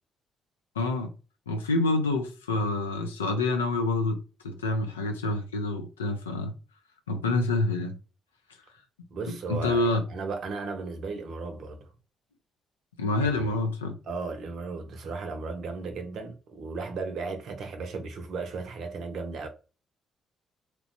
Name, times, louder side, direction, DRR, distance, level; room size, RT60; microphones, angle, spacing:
voice 1, 0.8-1.1 1.5-4.2 4.4-6.5 7.1-8.0 9.3-10.0 13.0-14.0, left 2 dB, 90° left, 0.3 m, -27 dB
voice 2, 9.1-11.9 13.4-13.6 14.0-19.5, right 4 dB, 65° right, 0.6 m, -35 dB
2.9 x 2.1 x 2.7 m
hypercardioid pair, 40°, 0 cm